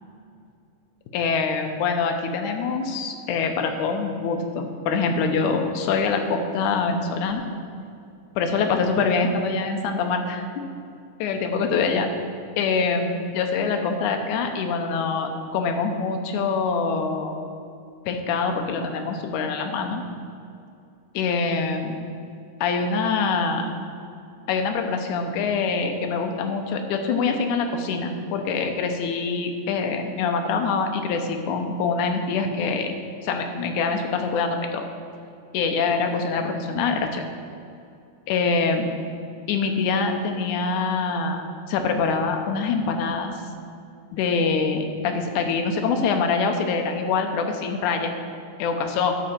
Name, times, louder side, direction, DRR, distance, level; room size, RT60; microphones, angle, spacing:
voice 1, 1.1-7.4 8.4-10.6 11.2-12.1 12.6-17.4 18.1-20.0 21.1-22.0 22.6-23.7 24.5-32.9 33.2-34.9 35.5-37.2 38.3-38.9 39.5-41.4 41.7-43.4 44.1-48.1 48.6-49.1, left 4 dB, 75° left, 4 dB, 2.1 m, -24 dB
11.0 x 6.7 x 4.3 m, 2.5 s
omnidirectional pair, 3.9 m